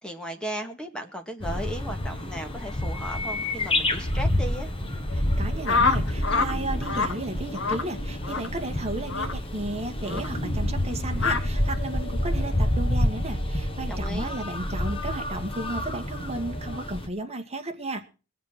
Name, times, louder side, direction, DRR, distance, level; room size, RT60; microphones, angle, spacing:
voice 1, 0.0-4.7 13.9-14.3, equal, 5° left, 4 dB, 2.0 m, -36 dB
sound 1, 1.4-17.1, left 1 dB, 25° left, 1.4 m, -28 dB
sound 2, 5.1-17.0, left 3 dB, 70° left, 2.3 m, -47 dB
voice 2, 5.1-18.0, right 2 dB, 30° right, 4 dB, 2.0 m, -34 dB
sound 3, 5.7-6.5 6.8-7.1 7.6-7.8 8.2-8.5 9.1-9.3 10.1-10.3 11.2-11.4, left 4 dB, 55° left, 1.7 m, -25 dB
21.5 x 7.5 x 6.0 m, 0.35 s
head